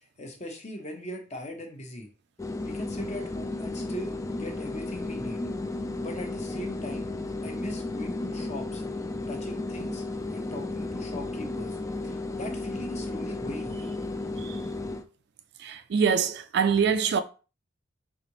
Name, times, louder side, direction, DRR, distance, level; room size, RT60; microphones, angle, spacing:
voice 1, 0.2-2.1 2.6-5.4 6.0-7.1 7.4-8.8 9.3-10.0 10.3-11.8 12.0-13.9, left 1 dB, 35° left, 1.0 m, -39 dB
sound 1, 2.4-15.0, left 2 dB, 15° left, 0.3 m, -34 dB
voice 2, 15.6-17.2, right 6 dB, 55° right, 0.4 m, -24 dB
4.1 x 3.6 x 3.1 m
head